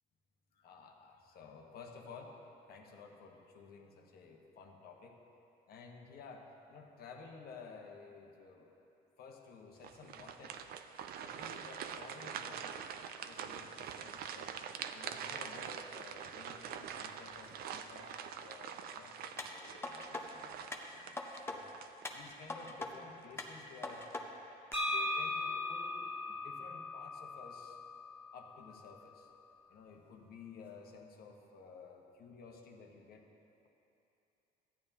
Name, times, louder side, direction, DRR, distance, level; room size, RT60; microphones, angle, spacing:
voice 1, 0.5-2.4 2.7-5.2 5.7-8.7 9.2-10.6 11.2-12.7 13.2-14.6 14.9-21.7 22.1-24.1 24.9-27.8 28.3-29.3 29.7-33.3, left 5 dB, 65° left, 1 dB, 1.2 m, -54 dB
sound 1, 9.8-22.5 22.9-23.1 23.7-24.2, right 8 dB, 65° right, 0.5 m, -45 dB
sound 2, 19.4-20.2 20.7-21.6 22.0-22.9 23.4-24.2 24.7-24.8, left 2 dB, 15° left, 0.8 m, -42 dB
sound 3, 24.7-28.5, left 2 dB, 10° right, 1.7 m, -38 dB
14.0 x 9.1 x 2.8 m, 2.8 s
cardioid pair, 110°, 17 cm